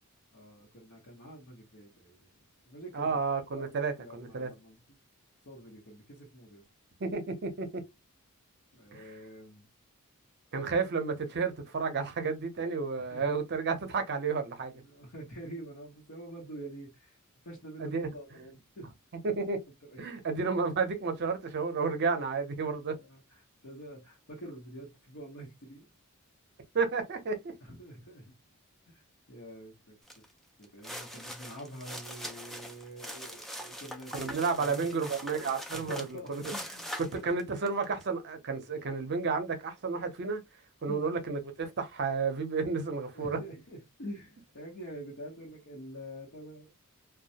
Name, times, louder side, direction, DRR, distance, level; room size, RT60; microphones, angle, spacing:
voice 1, 0.3-2.3 2.7-3.2 3.5-4.8 5.4-6.6 8.7-9.7 13.0-13.4 14.8-17.2 17.4-18.9 19.9-20.0 22.9-25.9 27.6-28.3 28.9-29.0 29.3-30.2 30.6-35.1 35.7-36.9 37.1-37.3 40.9-41.0 43.1-46.7, right 1 dB, 60° left, 0.9 m, -46 dB
voice 2, 2.9-4.5 7.0-7.8 8.9-9.0 10.5-14.8 17.8-18.1 19.2-19.6 20.0-22.9 26.7-27.4 34.1-36.4 37.0-40.4 40.8-43.4, right 4 dB, 50° right, 0.6 m, -31 dB
sound 1, 30.1-30.2 30.6-38.0, equal, ahead, 0.3 m, -42 dB
2.2 x 2.1 x 2.7 m
head